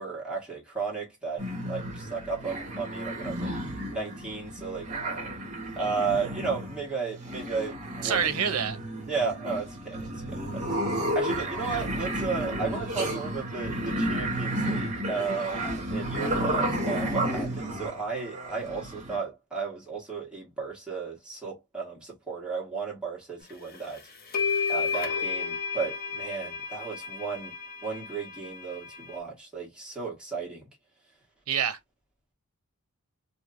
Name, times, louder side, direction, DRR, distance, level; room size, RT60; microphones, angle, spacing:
voice 1, 0.0-3.5 3.9-4.9 5.5-8.3 9.1-10.0 10.3-10.6 11.1-24.0 24.7-27.5 27.8-30.7, right 4 dB, 5° right, 1.5 m, -34 dB
sound 1, 1.4-19.2, right 1 dB, 30° right, 1.5 m, -32 dB
voice 2, 8.0-8.8 31.5-31.8, right 7 dB, 80° right, 0.6 m, -27 dB
sound 2, 23.7-23.8 24.3-29.2, left 5 dB, 40° left, 0.7 m, -32 dB
3.1 x 2.7 x 2.5 m
head